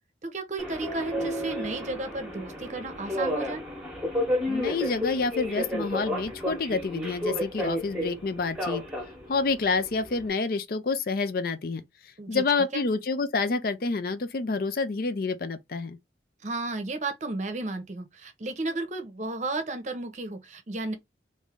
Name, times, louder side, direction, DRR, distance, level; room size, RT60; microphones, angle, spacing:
voice 1, 0.2-3.6 12.2-12.4 12.7-12.8 16.4-20.9, right 2 dB, 40° right, 0.7 m, -33 dB
Subway metro underground, 0.6-10.3, left 1 dB, 5° right, 1.0 m, -32 dB
voice 2, 4.5-8.8 9.3-16.0, left 4 dB, 55° left, 0.5 m, -28 dB
3.1 x 2.6 x 3.5 m
head